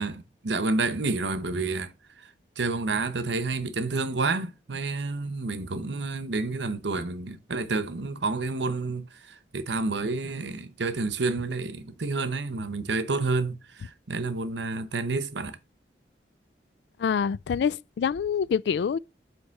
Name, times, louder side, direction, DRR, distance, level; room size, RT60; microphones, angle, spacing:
voice 1, 0.0-1.9 2.6-9.1 9.5-15.6, right 3 dB, 85° right, 0.9 m, -29 dB
voice 2, 17.0-19.0, left 7 dB, 75° left, 0.3 m, -26 dB
7.8 x 3.3 x 6.3 m
head